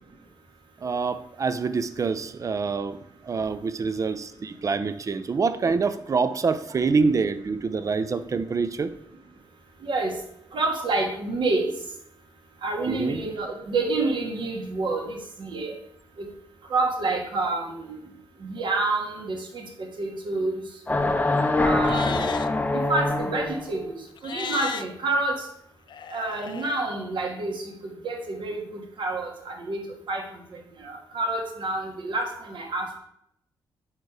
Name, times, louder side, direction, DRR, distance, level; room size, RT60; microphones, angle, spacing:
voice 1, 0.8-8.9 12.9-13.2, right 4 dB, 40° right, 12 dB, 0.5 m, -26 dB
voice 2, 9.8-10.1 10.5-11.7 12.6-15.7 16.2-16.3 16.7-17.9 18.4-20.6 21.6-22.3 22.7-25.4 26.1-29.8 30.1-30.2 30.8-32.9, right 3 dB, 65° right, 1 dB, 1.5 m, -28 dB
sound 1, 20.9-23.7, left 2 dB, 15° left, 0.6 m, -24 dB
Livestock farm animals working animals, 21.8-22.5 24.2-24.8 25.9-26.8, left 8 dB, 60° left, 0.4 m, -35 dB
5.0 x 4.5 x 4.7 m, 0.73 s
cardioid pair, 90°, 9 cm